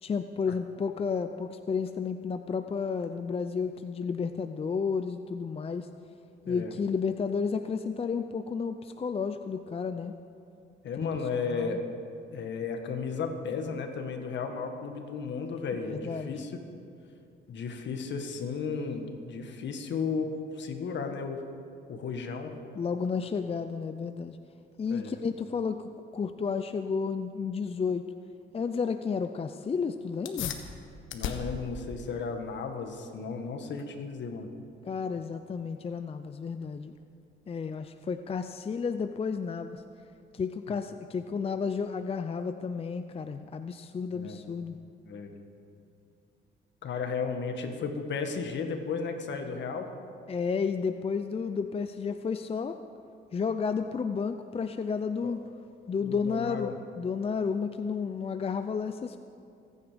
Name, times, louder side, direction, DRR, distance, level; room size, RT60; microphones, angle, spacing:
voice 1, 0.0-5.9 6.5-10.1 11.0-11.2 11.5-11.8 15.9-16.4 22.8-24.4 24.8-28.0 28.5-30.5 34.8-36.9 37.5-39.8 40.3-44.8 50.3-52.8 53.3-55.4 55.9-59.2, left 5 dB, 30° left, 8 dB, 0.5 m, -32 dB
voice 2, 10.8-11.8 12.3-16.5 17.5-20.3 20.5-21.4 21.9-22.5 24.9-25.1 31.1-34.5 40.7-40.8 44.1-44.4 45.0-45.3 46.8-49.9 55.2-55.3 56.0-56.8, left 5 dB, 65° left, 5 dB, 1.7 m, -34 dB
sound 1, 30.2-40.2, left 7 dB, 80° left, 1.4 m, -43 dB
26.0 x 9.8 x 5.2 m, 2.5 s
cardioid pair, 90°, 20 cm